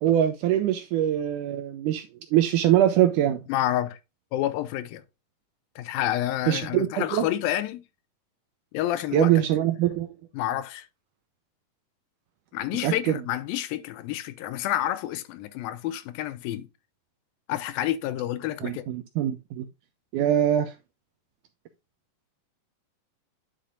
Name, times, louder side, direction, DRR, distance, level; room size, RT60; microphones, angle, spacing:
voice 1, 0.0-2.1 2.3-3.4 6.5-7.2 9.1-10.1 12.8-13.2 18.6-19.7 20.1-20.7, right 11 dB, 85° right, 1.9 m, -23 dB
voice 2, 3.5-4.0 4.3-5.0 5.8-7.8 8.7-9.4 10.3-10.9 12.5-16.7 17.5-18.8, left 13 dB, 85° left, 2.4 m, -29 dB
10.0 x 5.7 x 2.5 m
omnidirectional pair, 4.2 m